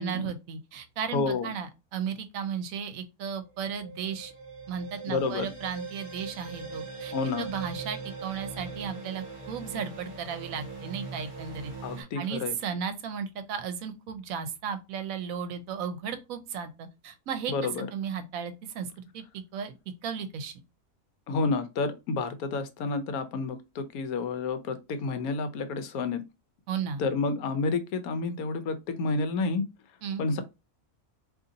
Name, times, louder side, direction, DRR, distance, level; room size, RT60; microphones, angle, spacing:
voice 1, 0.0-4.3 4.7-11.7 12.0-17.5 17.9-18.9 19.1-19.2 19.5-19.8 20.0-20.5 26.7-27.0 30.0-30.3, right 7 dB, 75° right, 1.0 m, -35 dB
voice 2, 1.1-1.5 5.1-5.5 7.1-7.5 11.8-12.6 17.5-17.9 21.3-26.2 27.0-29.6 30.2-30.4, left 4 dB, 85° left, 1.1 m, -30 dB
sound 1, 3.3-12.0, right 4 dB, 40° right, 1.4 m, -41 dB
2.8 x 2.6 x 3.8 m
omnidirectional pair, 1.5 m